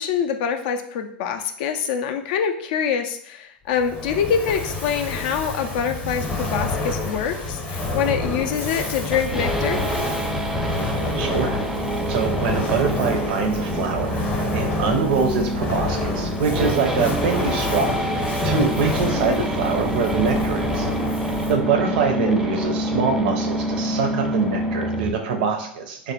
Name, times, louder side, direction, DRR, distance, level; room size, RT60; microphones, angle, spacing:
voice 1, 0.0-9.8 19.1-19.5 22.1-22.4, left 7 dB, 60° left, 6 dB, 0.3 m, -25 dB
Fire, 3.8-21.7, left 2 dB, 25° left, 0.7 m, -28 dB
sound 1, 9.1-25.1, right 1 dB, 5° right, 0.4 m, -27 dB
voice 2, 11.2-11.6 12.1-20.9 21.3-26.1, right 5 dB, 65° right, 4 dB, 0.5 m, -24 dB
3.3 x 2.1 x 2.8 m, 0.64 s
hypercardioid pair, 85°, 5 cm